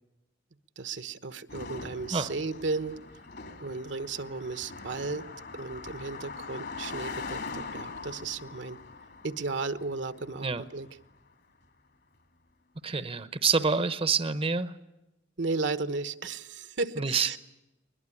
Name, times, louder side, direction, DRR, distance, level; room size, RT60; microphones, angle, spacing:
voice 1, 0.8-3.0 3.6-5.2 5.6-8.8 9.2-10.9 15.4-17.4, right 3 dB, 65° right, 12 dB, 1.2 m, -34 dB
Car passing by, 1.5-11.1, left 4 dB, 60° left, 2.7 m, -42 dB
voice 2, 12.8-14.7 17.0-17.4, right 5 dB, 30° right, 13 dB, 0.9 m, -27 dB
21.5 x 21.5 x 9.9 m, 0.98 s
head